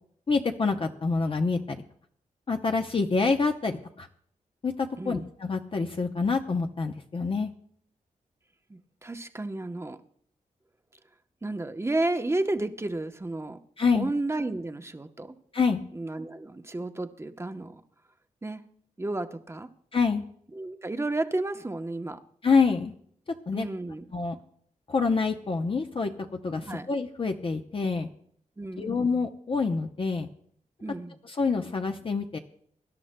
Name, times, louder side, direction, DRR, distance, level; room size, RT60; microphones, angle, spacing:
voice 1, 0.3-1.8 2.5-4.1 4.6-7.5 13.8-14.1 15.5-15.8 19.9-20.2 22.4-22.9 23.5-23.7 24.1-24.4 24.9-26.1 26.4-28.1 28.8-30.3 31.2-32.4, left 4 dB, 40° left, 4 dB, 0.7 m, -26 dB
voice 2, 8.7-10.0 11.4-13.6 13.9-15.3 15.9-17.8 18.4-18.6 19.0-19.7 20.5-22.2 23.5-24.0 26.6-26.9 28.6-29.1 30.8-31.2, right 2 dB, 20° right, 7 dB, 0.9 m, -32 dB
23.5 x 11.5 x 2.2 m, 0.64 s
cardioid pair, 85°, 14 cm